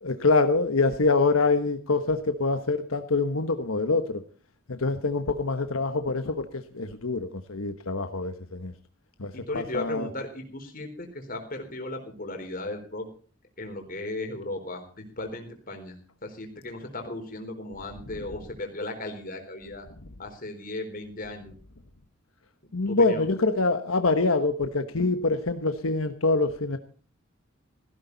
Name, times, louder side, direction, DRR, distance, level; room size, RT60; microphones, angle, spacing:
voice 1, 0.0-4.2 4.7-8.7 9.2-10.1 22.7-26.8, left 3 dB, 85° left, 8 dB, 1.3 m, -25 dB
voice 2, 9.3-13.1 13.6-16.0 16.2-19.9 20.2-21.5 22.9-23.2, left 2 dB, 45° left, 4 dB, 4.1 m, -36 dB
17.0 x 15.5 x 4.1 m, 0.42 s
head